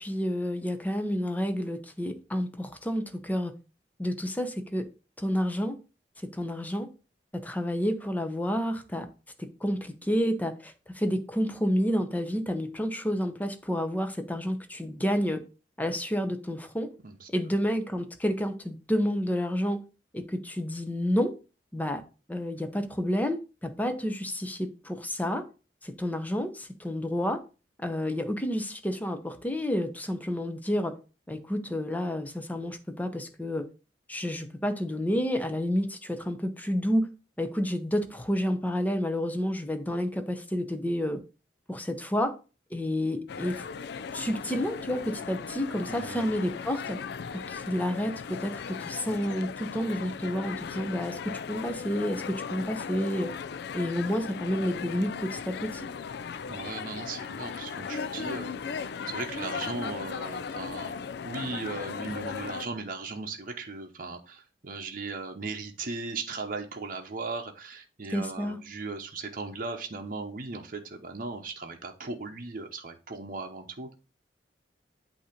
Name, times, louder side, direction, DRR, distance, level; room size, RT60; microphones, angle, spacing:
voice 1, 0.0-3.5 4.0-4.8 5.2-5.8 6.3-6.9 7.4-9.1 9.4-15.4 15.8-16.9 17.3-19.8 20.1-21.3 21.7-22.0 22.3-25.4 25.8-27.4 27.8-30.9 31.3-33.6 34.1-37.1 37.4-41.2 41.7-42.3 42.7-43.5 44.1-47.0 47.3-53.3 53.7-55.9 68.1-68.6, equal, 10° left, 7 dB, 0.7 m, -30 dB
sound 1, 43.3-62.7, left 6 dB, 65° left, 0.4 m, -37 dB
voice 2, 45.9-46.3 56.5-61.0 61.2-73.9, right 3 dB, 50° right, 4 dB, 0.8 m, -37 dB
8.4 x 2.8 x 5.1 m, 0.33 s
head